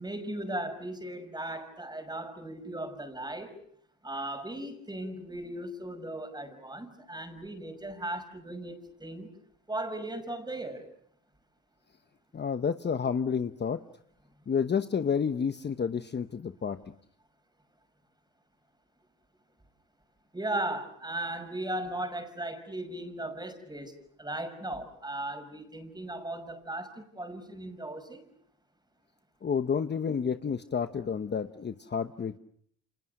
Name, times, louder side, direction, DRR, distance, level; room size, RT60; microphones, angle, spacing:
voice 1, 0.0-3.6 4.0-9.3 9.7-10.9 20.3-28.2, right 1 dB, 15° right, 8 dB, 5.8 m, -37 dB
voice 2, 12.3-13.8 14.5-16.8 29.4-32.3, left 6 dB, 35° left, 10 dB, 1.0 m, -30 dB
29.0 x 27.5 x 6.5 m, 0.65 s
cardioid pair, 90°, 30 cm